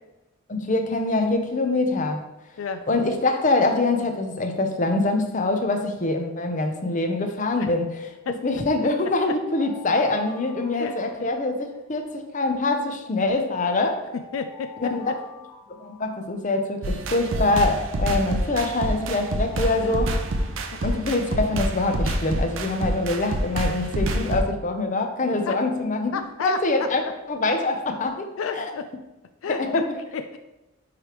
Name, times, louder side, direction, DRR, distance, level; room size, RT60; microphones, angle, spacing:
voice 1, 0.5-2.3 2.9-8.1 8.4-14.0 14.9-15.0 15.8-20.2 20.8-26.1 26.4-28.7 29.5-29.9, left 2 dB, 40° left, 5 dB, 0.7 m, -24 dB
sound 1, 8.7-11.9 13.1-16.8 17.9-21.2, left 5 dB, 10° left, 1.2 m, -47 dB
voice 2, 10.8-11.3 14.3-14.9 19.8-19.9 25.5-25.6 26.1-26.9 28.4-28.9 29.4-30.4, left 5 dB, 80° left, 8 dB, 0.4 m, -31 dB
sound 2, 16.8-24.4, right 1 dB, 75° right, 0.6 m, -27 dB
9.5 x 3.3 x 3.0 m, 1.0 s
head